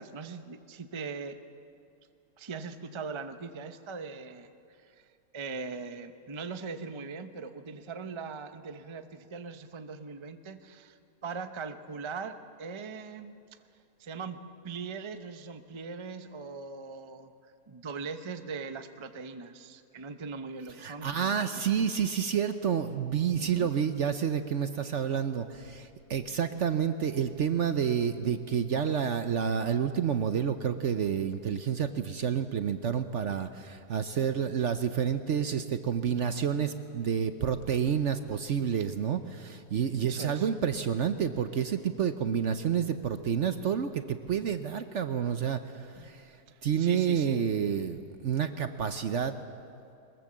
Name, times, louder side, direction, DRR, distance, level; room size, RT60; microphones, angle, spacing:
voice 1, 0.0-1.4 2.4-4.5 4.8-5.0 5.3-13.3 14.0-17.3 17.7-21.4 23.4-23.7 40.1-40.5 46.0-46.2 46.5-47.4, right 4 dB, 25° right, 9 dB, 0.6 m, -40 dB
voice 2, 20.8-46.4 46.6-49.3, right 8 dB, 55° right, 9 dB, 0.9 m, -29 dB
22.0 x 21.0 x 7.4 m, 2.6 s
omnidirectional pair, 1.7 m